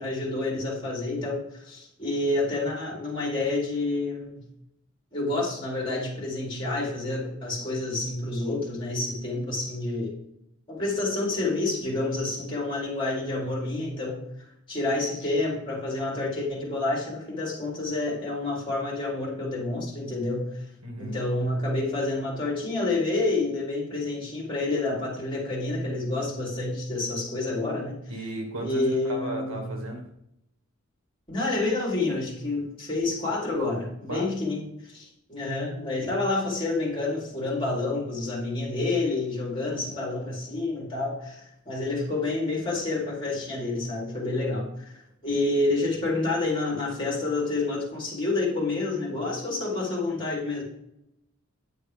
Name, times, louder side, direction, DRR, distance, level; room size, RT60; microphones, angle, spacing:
voice 1, 0.0-4.4 5.1-10.1 10.7-14.2 14.7-20.6 21.0-28.0 28.6-29.7 31.3-44.9 45.2-50.6, left 2 dB, 25° left, -4 dB, 3.8 m, -28 dB
voice 2, 20.8-21.1 28.1-30.0 34.0-34.3, right 1 dB, 70° right, 1 dB, 2.1 m, -34 dB
10.0 x 9.1 x 3.5 m, 0.79 s
head